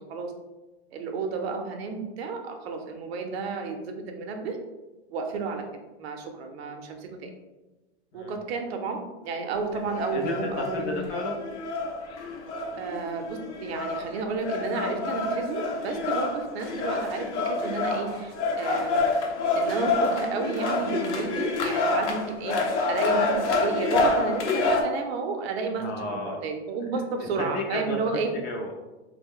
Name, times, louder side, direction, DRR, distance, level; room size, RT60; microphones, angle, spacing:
voice 1, 0.9-4.6 5.1-5.7 6.0-7.3 8.1-11.0 12.8-19.1 19.5-22.6 22.9-28.3, right 4 dB, 65° right, 4 dB, 0.6 m, -32 dB
sound 1, 9.9-24.8, left 3 dB, 80° left, 0.6 m, -27 dB
voice 2, 10.1-11.4 25.8-26.4 27.2-28.9, left 2 dB, 30° left, 1 dB, 0.3 m, -33 dB
2.3 x 2.1 x 3.5 m, 1.1 s
hypercardioid pair, 120°, 33 cm